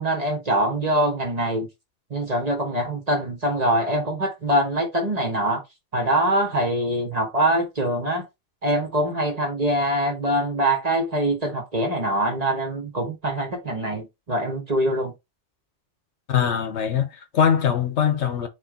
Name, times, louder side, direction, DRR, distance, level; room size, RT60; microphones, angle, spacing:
voice 1, 0.0-1.7 2.1-5.6 5.9-8.2 8.6-15.1, right 1 dB, 35° right, 1.2 m, -24 dB
voice 2, 16.3-18.5, left 8 dB, 65° left, 1.0 m, -22 dB
4.3 x 3.1 x 3.6 m
omnidirectional pair, 1.3 m